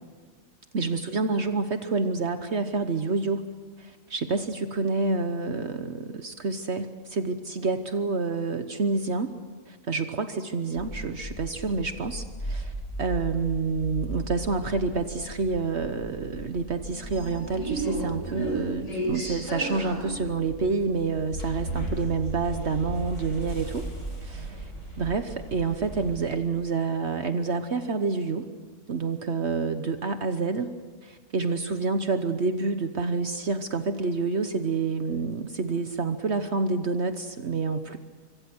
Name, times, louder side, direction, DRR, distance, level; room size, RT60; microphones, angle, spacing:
voice 1, 0.7-3.5 3.8-9.3 9.7-12.7 13.0-23.8 24.2-24.7 25.0-28.5 28.9-30.7 31.0-38.0, right 4 dB, 60° right, 8 dB, 1.3 m, -28 dB
sound 1, 10.8-26.4, right 1 dB, 80° left, 6.5 m, -35 dB
25.5 x 25.0 x 6.2 m, 1.4 s
omnidirectional pair, 1.4 m